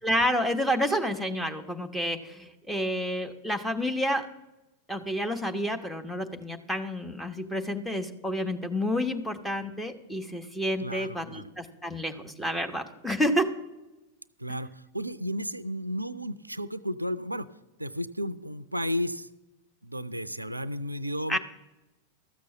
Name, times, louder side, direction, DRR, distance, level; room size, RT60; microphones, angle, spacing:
voice 1, 0.0-4.3 4.9-13.5 21.3-21.4, equal, 5° left, 5 dB, 1.1 m, -29 dB
voice 2, 10.8-11.5 14.4-17.5 17.8-19.3 19.8-21.4, equal, 85° right, 15 dB, 0.4 m, -33 dB
13.5 x 6.7 x 7.0 m, 1.0 s
figure-of-eight pair, 90°, 0 cm